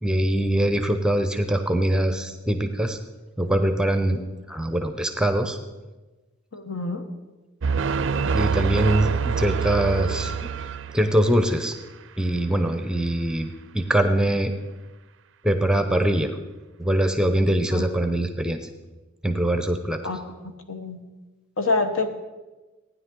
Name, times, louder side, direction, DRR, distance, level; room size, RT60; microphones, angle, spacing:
voice 1, 0.0-3.0 3.4-4.2 4.5-5.6 8.3-10.3 10.9-11.7 12.2-14.5 15.4-16.4 16.8-18.6 19.2-20.0, right 1 dB, 5° right, 7 dB, 0.6 m, -23 dB
voice 2, 6.5-7.0 17.7-17.8 20.0-20.4 20.7-21.0 21.6-22.1, left 3 dB, 75° left, 7 dB, 1.1 m, -26 dB
sound 1, 7.6-11.4, right 6 dB, 60° right, 0.4 m, -26 dB
15.5 x 9.8 x 3.7 m, 1.2 s
head